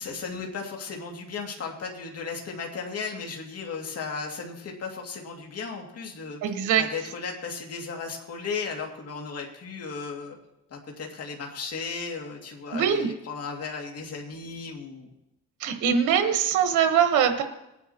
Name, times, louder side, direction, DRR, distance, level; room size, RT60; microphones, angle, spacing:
voice 1, 0.0-6.4 6.8-10.4 10.7-15.1, left 5 dB, 55° left, 1 dB, 2.3 m, -35 dB
voice 2, 6.4-6.9 12.7-13.1 15.6-17.4, right 8 dB, 85° right, 7 dB, 1.2 m, -22 dB
20.0 x 9.5 x 2.9 m, 0.90 s
cardioid pair, 90°, 30 cm